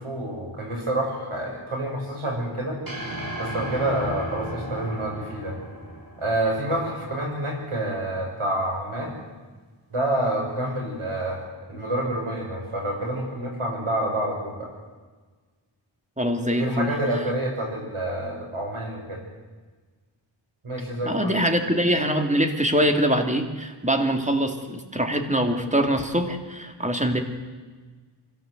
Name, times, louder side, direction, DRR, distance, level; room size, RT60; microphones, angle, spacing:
voice 1, 0.0-2.8 3.4-5.6 6.2-9.1 9.9-11.4 11.7-14.7 16.6-19.2 20.6-21.4, right 1 dB, 85° right, 0 dB, 6.6 m, -28 dB
sound 1, 2.9-7.2, right 1 dB, 45° right, 6.9 m, -35 dB
voice 2, 16.2-16.9 21.0-27.2, equal, 15° right, 5 dB, 2.7 m, -23 dB
25.0 x 17.0 x 8.1 m, 1.4 s
wide cardioid pair, 75°, 49 cm